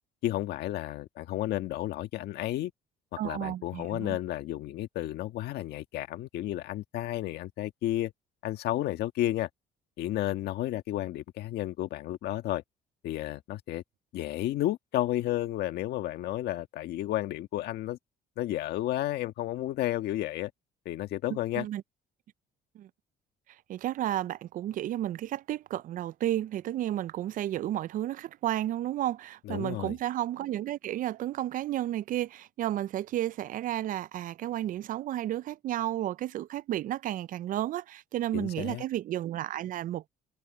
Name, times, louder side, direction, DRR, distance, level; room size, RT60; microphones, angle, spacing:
voice 1, 0.2-2.7 3.2-8.1 8.4-9.5 10.0-12.6 13.0-13.8 14.1-18.0 18.4-20.5 20.8-21.7 29.4-30.0 38.3-38.8, left 14 dB, 75° left, 1.4 m, -32 dB
voice 2, 3.2-4.2 21.3-21.8 22.8-22.9 23.7-40.1, right 13 dB, 55° right, 0.4 m, -32 dB
cardioid pair, 110°, 17 cm